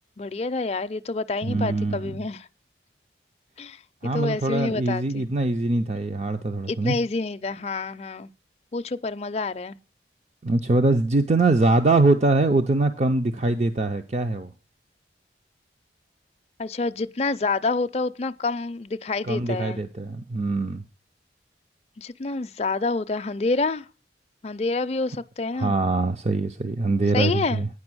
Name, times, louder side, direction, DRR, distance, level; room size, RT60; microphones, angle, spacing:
voice 1, 0.2-2.5 3.6-5.2 6.7-8.3 8.7-9.8 16.6-19.8 22.0-23.9 24.4-25.8 27.1-27.7, left 3 dB, 35° left, 0.4 m, -28 dB
voice 2, 1.5-2.1 4.0-7.0 10.4-14.5 19.3-20.8 25.5-27.7, right 2 dB, 35° right, 0.5 m, -23 dB
9.6 x 5.6 x 6.1 m
head